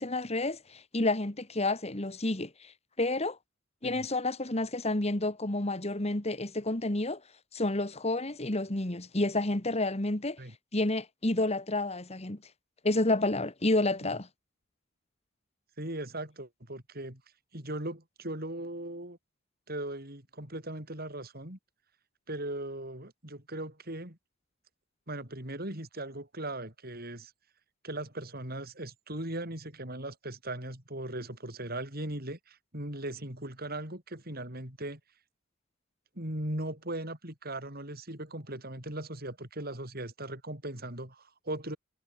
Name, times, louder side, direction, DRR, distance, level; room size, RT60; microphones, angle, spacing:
voice 1, 0.0-2.7 3.0-3.4 3.8-7.2 7.5-10.4 10.7-12.4 12.8-14.3, left 2 dB, 30° left, 1.8 m, -30 dB
voice 2, 15.8-17.2 17.5-19.2 19.7-21.6 22.3-24.2 25.1-27.3 27.8-35.0 36.2-41.8, right 1 dB, 45° right, 7.3 m, -38 dB
head